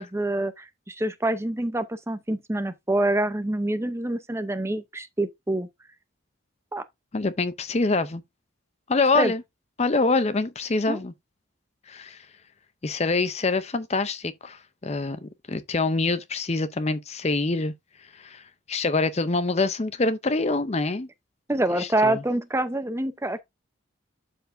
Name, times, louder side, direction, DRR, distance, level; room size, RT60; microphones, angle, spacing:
voice 1, 0.0-5.7 6.7-6.8 9.1-9.3 10.9-11.0 21.5-23.4, right 1 dB, 15° right, 0.7 m, -26 dB
voice 2, 7.1-8.2 8.9-9.4 9.8-11.1 11.9-12.3 12.8-17.7 18.0-21.1 21.8-22.2, left 3 dB, 30° left, 0.6 m, -25 dB
12.0 x 4.6 x 2.6 m
head